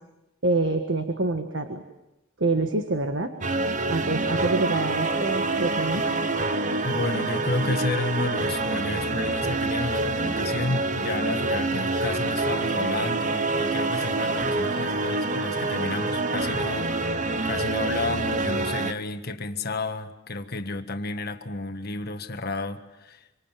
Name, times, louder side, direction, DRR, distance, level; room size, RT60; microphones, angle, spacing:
voice 1, 0.4-1.8 2.4-3.3 3.9-6.3, right 2 dB, 65° right, 1.7 m, -26 dB
sound 1, 3.4-18.9, right 2 dB, 40° right, 1.1 m, -26 dB
sound 2, 4.3-17.5, left 4 dB, 15° left, 2.6 m, -45 dB
voice 2, 6.8-23.4, left 2 dB, 50° left, 1.6 m, -31 dB
26.5 x 25.5 x 7.5 m
head